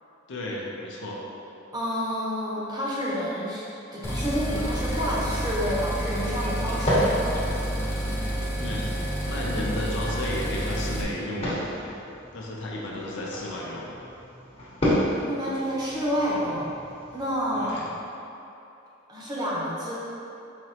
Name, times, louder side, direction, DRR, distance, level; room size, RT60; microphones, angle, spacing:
voice 1, 0.3-1.2 8.6-8.9 9.3-11.7 12.3-13.8 17.6-17.9, left 1 dB, 65° left, -3 dB, 0.6 m, -33 dB
voice 2, 1.7-3.6 3.9-7.4 15.3-16.7 17.1-17.9 19.1-19.9, equal, 20° right, -8 dB, 0.8 m, -29 dB
sound 1, 4.0-11.0, equal, 10° left, 0.4 m, -29 dB
sound 2, 5.4-17.8, equal, 30° left, 1.0 m, -32 dB
4.9 x 3.0 x 2.8 m, 2.8 s
head